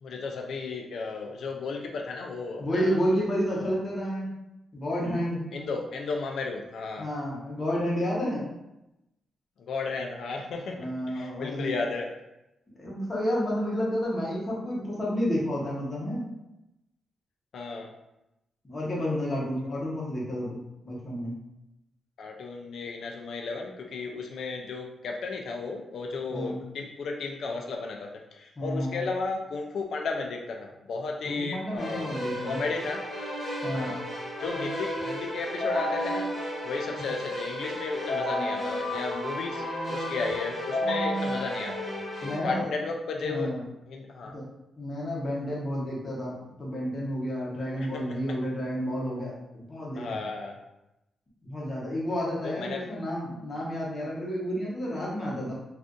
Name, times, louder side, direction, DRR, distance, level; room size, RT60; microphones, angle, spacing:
voice 1, 0.0-3.0 3.6-3.7 5.5-7.1 9.6-12.1 17.5-17.9 22.2-32.1 32.4-33.0 33.7-34.0 34.4-41.9 42.2-43.5 43.9-44.3 47.8-48.2 50.0-50.6 52.4-52.8 53.6-53.7, left 4 dB, 60° left, 2 dB, 0.4 m, -34 dB
voice 2, 2.6-4.3 4.7-5.4 7.0-8.5 10.7-11.7 12.8-16.3 18.6-21.4 26.3-26.6 28.6-29.0 31.2-32.6 33.6-34.0 37.0-37.1 42.2-42.6 43.2-43.6 44.3-44.5 44.8-50.2 51.4-55.5, equal, 25° left, -5 dB, 0.8 m, -30 dB
Keyboard (musical), 31.8-42.4, left 1 dB, ahead, 1.1 m, -32 dB
2.5 x 2.4 x 3.6 m, 0.91 s
wide cardioid pair, 175°, 0 cm